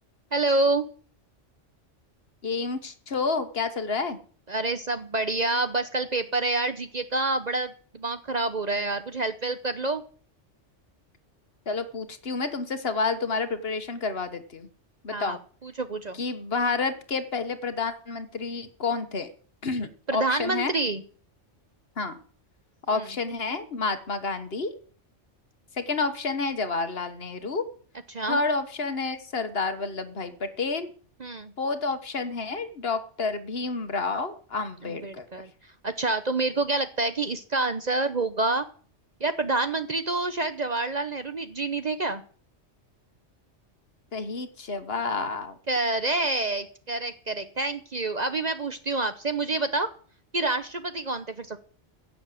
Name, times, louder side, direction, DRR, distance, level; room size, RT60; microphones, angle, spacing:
voice 1, 0.3-0.9 4.5-10.0 15.1-16.2 20.1-21.0 22.9-23.0 28.1-28.4 31.2-31.5 34.8-35.5 35.8-38.6 39.2-42.2 45.7-49.9 50.3-51.6, right 2 dB, 40° right, 10 dB, 0.8 m, -27 dB
voice 2, 2.4-4.2 11.7-14.7 15.0-15.4 16.2-19.3 19.6-20.7 22.0-22.2 22.9-24.7 25.7-27.6 28.3-30.9 31.6-35.2 44.1-45.5, left 4 dB, 55° left, 10 dB, 1.5 m, -29 dB
16.0 x 7.0 x 7.7 m, 0.43 s
omnidirectional pair, 1.3 m